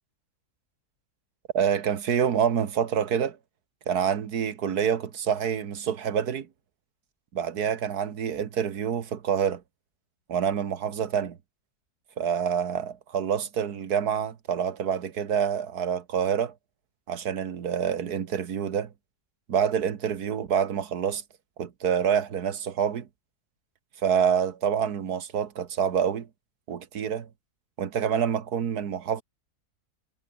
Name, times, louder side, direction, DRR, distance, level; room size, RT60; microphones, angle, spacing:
voice 1, 1.5-3.4 3.9-6.5 7.3-9.6 10.3-11.4 12.2-16.5 17.1-18.9 19.5-21.2 21.6-23.1 24.0-26.3 26.7-27.3 27.8-29.2, right 8 dB, 85° right, 1.9 m, -27 dB
omnidirectional pair, 1.6 m